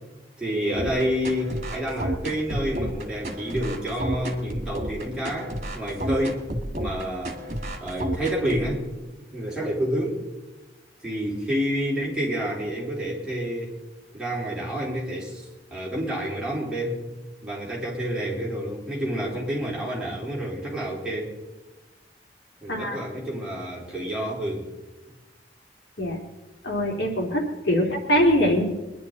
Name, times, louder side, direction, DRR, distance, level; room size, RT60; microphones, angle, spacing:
voice 1, 0.4-6.5 6.8-7.4 7.8-8.9 9.1-10.2 11.0-13.8 14.1-17.0 17.4-21.3 22.6-24.7 27.8-27.9, equal, 5° right, -6 dB, 4.2 m, -29 dB
sound 1, 0.8-8.7, right 1 dB, 40° right, 2.2 m, -31 dB
voice 2, 26.6-28.6, equal, 90° left, -1 dB, 3.3 m, -23 dB
23.5 x 11.0 x 4.1 m, 1.1 s
head